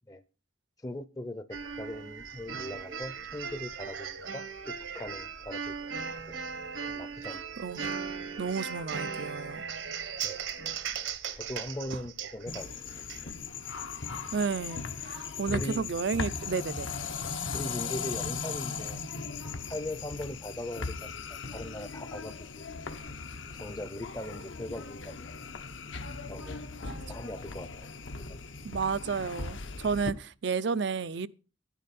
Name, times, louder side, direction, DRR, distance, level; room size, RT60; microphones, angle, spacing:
voice 1, 0.8-5.7 6.9-7.4 7.8-8.0 10.2-10.4 11.4-12.7 12.9-13.0 14.2-14.3 15.5-15.9 17.5-19.0 19.7-22.6 23.5-25.4 26.2-27.9 28.3-28.4, left 1 dB, 20° left, 0.6 m, -40 dB
sound 1, 1.5-13.2, right 6 dB, 85° right, 1.5 m, -38 dB
voice 2, 7.6-8.0 8.4-9.7 14.3-16.9 26.8-27.0 28.6-31.3, right 5 dB, 60° right, 0.5 m, -32 dB
sound 2, 12.5-30.1, left 4 dB, 75° left, 1.1 m, -38 dB
12.5 x 10.0 x 4.2 m
head